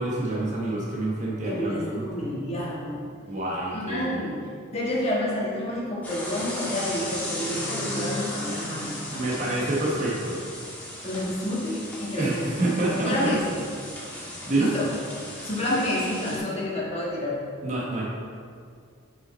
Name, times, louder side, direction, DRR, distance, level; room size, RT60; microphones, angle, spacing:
voice 1, 0.0-2.1 3.3-4.2 9.1-10.4 12.1-13.4 14.1-14.7 17.6-18.0, right 2 dB, 35° right, -5 dB, 1.2 m, -27 dB
voice 2, 1.4-3.1 3.7-9.2 11.0-12.5 12.9-13.6 14.6-14.9 15.4-17.4, left 1 dB, 30° left, -6 dB, 1.5 m, -29 dB
sound 1, 6.0-16.4, left 1 dB, 10° left, 1.5 m, -35 dB
5.8 x 5.6 x 4.3 m, 2.2 s
head